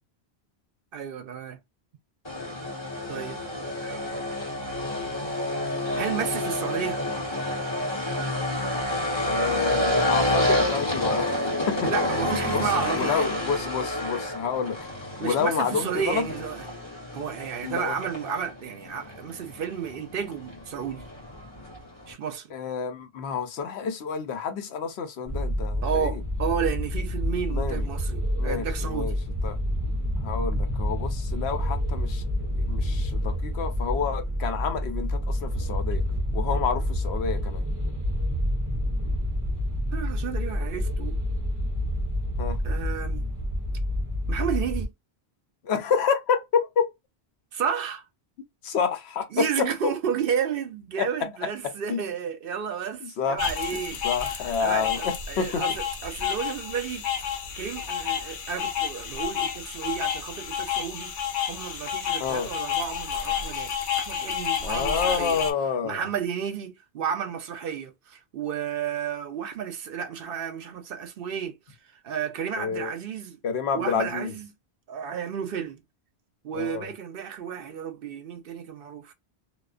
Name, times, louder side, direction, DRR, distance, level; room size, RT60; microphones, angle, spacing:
voice 1, 0.9-1.6 3.1-4.1 6.0-7.0 11.8-13.4 15.2-16.7 17.1-21.1 22.1-22.5 25.8-29.2 39.9-41.2 42.6-43.3 44.3-44.9 47.5-48.0 49.3-54.0 54.6-57.1 57.6-61.1 61.5-65.4 65.8-71.6 72.0-73.4 73.7-74.5 74.9-75.8 76.4-79.1, right 7 dB, 65° right, 0.7 m, -32 dB
sound 1, 2.3-22.1, left 1 dB, 25° left, 1.1 m, -29 dB
voice 2, 9.2-11.9 12.5-14.8 15.2-16.3 17.6-18.0 22.5-26.2 27.5-27.9 28.4-29.2 29.4-29.6 30.2-36.0 36.3-37.7 42.4-42.6 45.6-46.9 48.6-49.9 51.0-51.1 51.6-52.0 53.0-53.4 53.7-55.6 62.2-62.5 64.6-66.0 72.6-72.9 73.4-74.3 76.5-76.9, left 6 dB, 80° left, 0.9 m, -29 dB
sound 2, 25.3-44.9, equal, 20° right, 0.6 m, -28 dB
sound 3, 53.4-65.5, left 8 dB, 60° left, 0.7 m, -30 dB
2.4 x 2.3 x 2.4 m
omnidirectional pair, 1.1 m